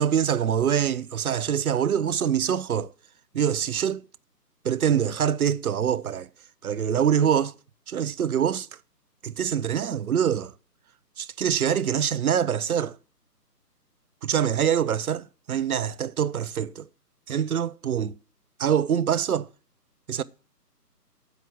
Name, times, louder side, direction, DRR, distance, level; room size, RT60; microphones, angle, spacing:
voice 1, 0.0-2.9 3.3-4.0 4.6-6.3 6.6-7.5 7.9-8.7 9.2-10.5 11.2-13.0 14.2-16.9 17.3-18.1 18.6-19.5 20.1-20.2, right 8 dB, 60° right, 0.7 m, -24 dB
8.3 x 8.0 x 7.5 m
figure-of-eight pair, 155°, 49 cm